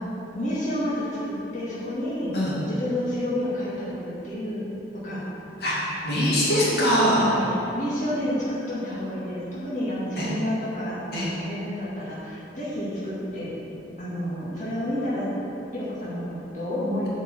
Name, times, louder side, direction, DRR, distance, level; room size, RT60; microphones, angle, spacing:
voice 1, 0.3-2.3 2.7-5.2 7.2-13.6 14.0-15.3 15.7-17.1, left 1 dB, 45° left, -9 dB, 2.0 m, -30 dB
voice 2, 6.0-7.3 10.2-10.3 11.1-11.3, equal, 65° left, -6 dB, 2.2 m, -22 dB
8.2 x 5.4 x 7.5 m, 2.9 s
head